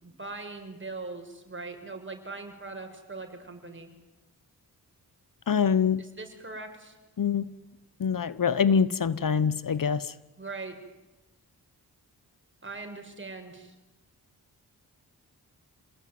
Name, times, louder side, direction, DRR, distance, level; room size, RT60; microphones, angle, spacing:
voice 1, 0.0-3.9 6.0-6.9 10.4-10.8 12.6-13.7, right 3 dB, 30° right, 6.6 m, -41 dB
voice 2, 5.5-6.0 7.2-7.5 8.0-10.1, left 6 dB, 60° left, 1.1 m, -24 dB
29.0 x 19.5 x 9.6 m
cardioid pair, 60°, 38 cm